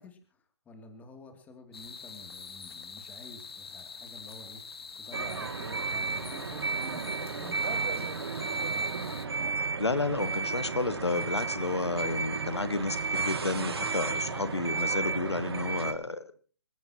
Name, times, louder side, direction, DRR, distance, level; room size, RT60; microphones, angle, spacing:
voice 1, 0.0-9.1, left 2 dB, 10° left, 6 dB, 2.7 m, -50 dB
sound 1, 1.7-9.3, left 5 dB, 70° left, 1.5 m, -45 dB
sound 2, 5.1-15.9, right 4 dB, 70° right, 2.4 m, -33 dB
voice 2, 9.8-16.2, left 3 dB, 90° left, 12 dB, 1.5 m, -31 dB
27.0 x 14.5 x 3.0 m, 0.39 s
figure-of-eight pair, 140°, 14 cm